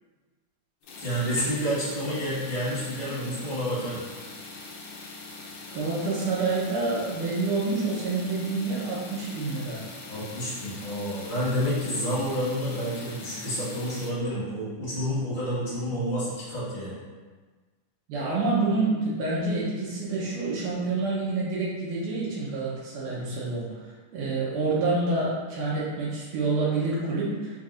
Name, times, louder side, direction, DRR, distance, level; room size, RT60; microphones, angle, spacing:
sound 1, 0.8-14.1, left 3 dB, 75° left, 1.6 m, -42 dB
voice 1, 1.0-4.0 10.1-17.0, equal, 55° left, -12 dB, 0.5 m, -29 dB
voice 2, 5.7-9.8 18.1-23.7 24.1-27.5, right 3 dB, 85° right, -7 dB, 2.4 m, -27 dB
5.8 x 3.5 x 2.5 m, 1.4 s
omnidirectional pair, 3.6 m